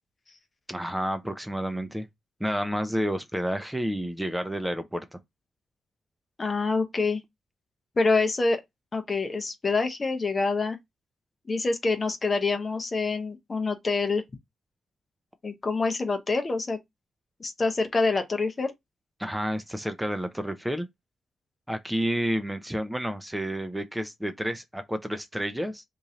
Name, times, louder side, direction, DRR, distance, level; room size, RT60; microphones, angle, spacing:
voice 1, 0.7-2.1 2.4-5.2 19.2-20.9 21.7-25.8, equal, 5° right, 0.6 m, -30 dB
voice 2, 6.4-7.2 8.0-8.6 8.9-10.8 11.5-14.2 15.4-16.8 17.4-18.7, left 3 dB, 40° left, 0.8 m, -26 dB
3.0 x 2.7 x 3.7 m
supercardioid pair, 50°, 0 cm